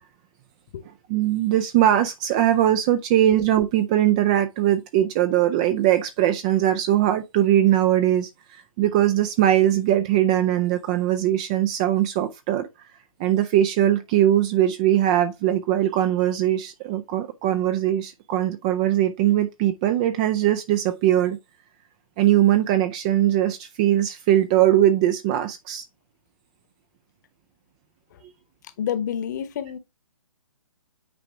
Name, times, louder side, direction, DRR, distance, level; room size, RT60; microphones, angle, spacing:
voice 1, 1.1-12.7 13.2-21.4 22.2-25.8, right 12 dB, 15° right, 0.4 m, -21 dB
voice 2, 28.8-29.8, left 9 dB, 35° left, 1.1 m, -28 dB
9.0 x 5.0 x 3.5 m
figure-of-eight pair, 135°, 17 cm